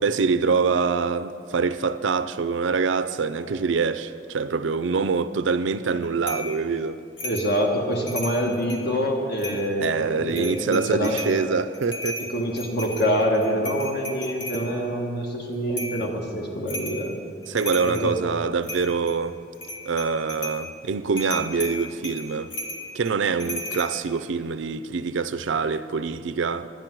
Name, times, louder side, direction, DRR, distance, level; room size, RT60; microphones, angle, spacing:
voice 1, 0.0-7.0 9.8-12.2 17.5-19.4 19.9-22.5 22.9-26.7, right 5 dB, 90° right, 0.5 m, -25 dB
sound 1, 6.3-6.5 7.2-7.5 7.9-8.9 9.4-9.9 10.3-11.4 11.7-14.7 15.8-16.0 16.7-17.0 17.4-18.1 18.6-19.2 19.5-20.6 21.2-23.9, left 1 dB, 80° left, 1.5 m, -34 dB
voice 2, 7.2-11.2 12.3-17.1 17.8-18.1, equal, 60° left, 1.4 m, -25 dB
10.5 x 10.5 x 6.1 m
head